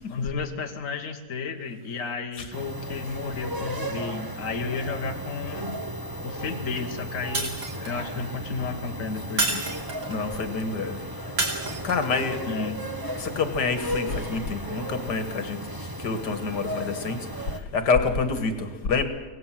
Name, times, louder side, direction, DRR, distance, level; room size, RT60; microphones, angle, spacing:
voice 1, 0.1-5.8 6.2-9.7 12.5-12.8, left 4 dB, 50° left, 4 dB, 1.8 m, -32 dB
sound 1, 2.5-17.6, equal, 15° right, 0.9 m, -35 dB
Shatter, 7.3-8.1 9.4-10.2 11.4-12.2, right 2 dB, 85° right, 3.6 m, -29 dB
voice 2, 10.1-11.0 11.8-12.4 13.2-15.6 16.0-19.0, left 4 dB, 85° left, 8 dB, 2.3 m, -27 dB
25.0 x 18.0 x 7.6 m, 1.3 s
omnidirectional pair, 1.8 m